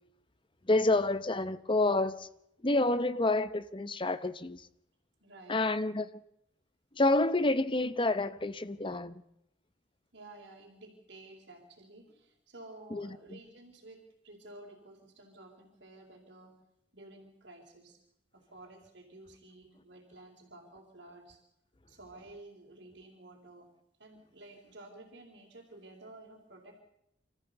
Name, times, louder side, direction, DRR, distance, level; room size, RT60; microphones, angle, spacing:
voice 1, 0.7-2.3 2.6-4.6 5.5-6.1 7.0-9.2 12.9-13.1, left 2 dB, 25° left, 0.8 m, -28 dB
voice 2, 5.2-5.6 10.1-16.5 16.9-18.0 18.3-21.4 21.9-23.7 24.0-26.8, right 2 dB, 60° right, 3.9 m, -52 dB
26.5 x 14.5 x 8.1 m
head